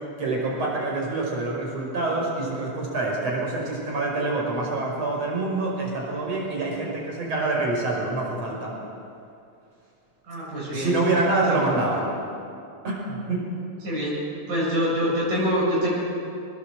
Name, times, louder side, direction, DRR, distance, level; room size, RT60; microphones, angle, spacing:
voice 1, 0.2-8.7 10.7-12.1 12.8-13.4, right 2 dB, 50° right, -2 dB, 6.5 m, -26 dB
voice 2, 10.3-11.0 11.5-11.7 13.8-14.1 14.5-15.9, equal, 70° right, -6 dB, 9.2 m, -25 dB
23.0 x 20.5 x 7.7 m, 2.6 s
omnidirectional pair, 3.6 m